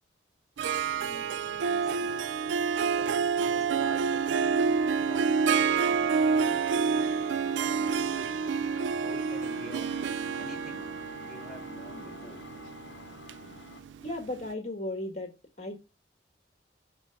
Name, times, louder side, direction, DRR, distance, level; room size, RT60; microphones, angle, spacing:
voice 1, 0.6-2.2 2.8-4.3 5.1-7.2 7.5-8.3 9.0-10.1 10.4-10.9 11.2-12.5, left 1 dB, ahead, 3.6 m, -48 dB
Harp, 0.6-14.1, right 5 dB, 80° right, 0.3 m, -28 dB
sound 1, 4.1-13.9, left 4 dB, 75° left, 0.7 m, -48 dB
voice 2, 14.0-15.3 15.6-15.8, left 1 dB, 35° left, 1.5 m, -35 dB
10.5 x 4.4 x 5.1 m
head